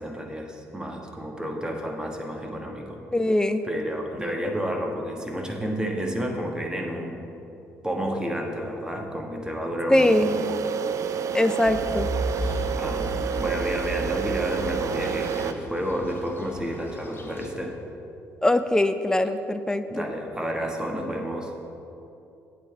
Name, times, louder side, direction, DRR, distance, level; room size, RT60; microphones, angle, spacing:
voice 1, 0.0-3.0 3.6-7.3 7.8-10.3 12.8-17.8 19.9-21.5, equal, 10° right, 1 dB, 1.4 m, -31 dB
voice 2, 3.1-3.6 9.9-10.5 11.3-12.1 18.4-20.0, left 1 dB, 10° left, 10 dB, 0.5 m, -22 dB
sound 1, 9.9-15.5, right 7 dB, 45° right, 0.4 m, -29 dB
sound 2, 11.6-17.5, right 1 dB, 30° left, 1.2 m, -34 dB
8.3 x 5.0 x 6.8 m, 2.8 s
figure-of-eight pair, 45°, 8 cm